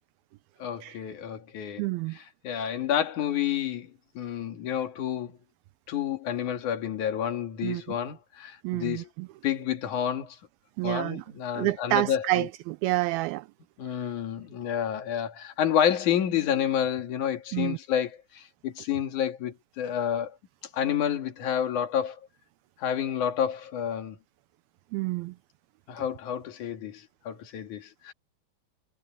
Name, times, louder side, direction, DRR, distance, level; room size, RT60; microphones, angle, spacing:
voice 1, 0.6-1.8 2.1-5.4 5.9-9.1 9.4-10.4 10.8-12.5 13.8-20.4 20.7-22.2 22.8-24.2 25.9-28.1, left 9 dB, 55° left, 3.5 m, -29 dB
voice 2, 1.8-2.2 7.6-7.8 8.6-9.3 10.8-11.2 11.6-13.5 17.5-17.8 24.9-25.3, right 19 dB, 80° right, 2.4 m, -28 dB
omnidirectional pair, 4.5 m